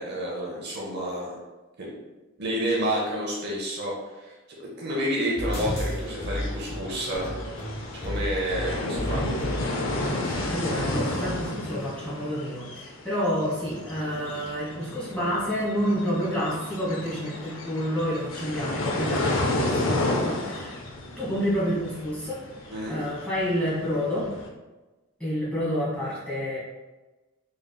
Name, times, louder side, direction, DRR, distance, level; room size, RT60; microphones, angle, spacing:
voice 1, 0.0-1.4 1.8-1.9 2.4-4.3 4.6-7.3 7.9-9.2 22.7-23.0, equal, 45° right, -3 dB, 0.6 m, -29 dB
sound 1, 5.4-11.4, equal, 25° left, 0.7 m, -33 dB
sound 2, 5.5-24.5, left 2 dB, 60° left, 0.5 m, -32 dB
voice 2, 10.2-20.8 21.2-22.4 22.9-24.3 25.2-26.6, equal, 5° left, -9 dB, 1.2 m, -29 dB
3.7 x 3.4 x 2.2 m, 1.1 s
head